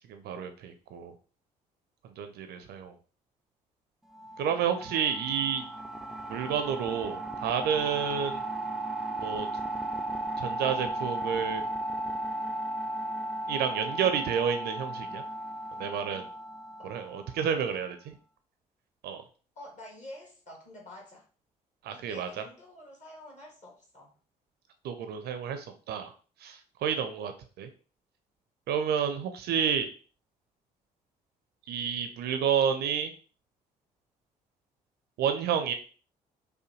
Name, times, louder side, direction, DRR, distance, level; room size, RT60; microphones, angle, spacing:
voice 1, 0.1-1.1 2.2-2.9 4.4-5.6 6.3-8.4 9.2-9.5 10.4-11.6 13.5-15.2 15.8-16.3 16.8-18.1 19.0-19.2 21.8-22.4 24.8-26.1 26.4-27.3 27.6-27.7 28.7-29.9 31.7-33.1 35.2-35.7, right 7 dB, 50° right, 7 dB, 0.5 m, -30 dB
sound 1, 4.1-17.6, right 1 dB, ahead, 0.5 m, -35 dB
voice 2, 19.6-21.3 21.9-24.2, left 1 dB, 35° left, -1 dB, 1.9 m, -48 dB
4.9 x 2.2 x 3.0 m, 0.38 s
figure-of-eight pair, 45°, 20 cm